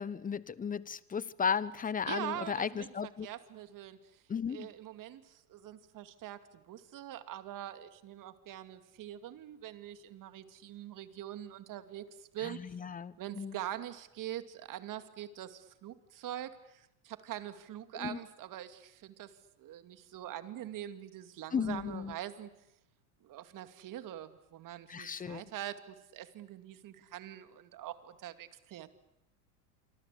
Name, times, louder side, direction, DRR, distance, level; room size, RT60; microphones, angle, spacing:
voice 1, 0.0-3.3 4.3-4.7 12.4-13.5 17.9-18.2 21.5-22.1 24.9-25.4, left 6 dB, 15° left, 18 dB, 1.1 m, -35 dB
voice 2, 2.1-4.2 4.5-12.6 13.2-22.5 23.2-28.9, right 12 dB, 40° right, 10 dB, 2.5 m, -44 dB
26.5 x 25.5 x 8.5 m, 0.87 s
hypercardioid pair, 95°, 47 cm